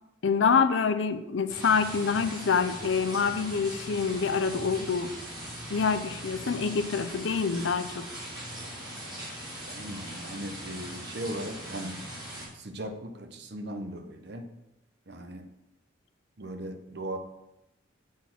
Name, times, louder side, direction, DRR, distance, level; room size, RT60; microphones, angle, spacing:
voice 1, 0.2-5.1 5.7-8.1, left 5 dB, 70° left, 10 dB, 0.5 m, -26 dB
sound 1, 1.5-12.5, right 1 dB, 20° right, 3.0 m, -40 dB
voice 2, 9.7-12.0 12.5-14.5 15.1-15.4 16.4-17.2, right 1 dB, 55° right, 6 dB, 0.8 m, -38 dB
7.3 x 4.4 x 5.8 m, 0.89 s
head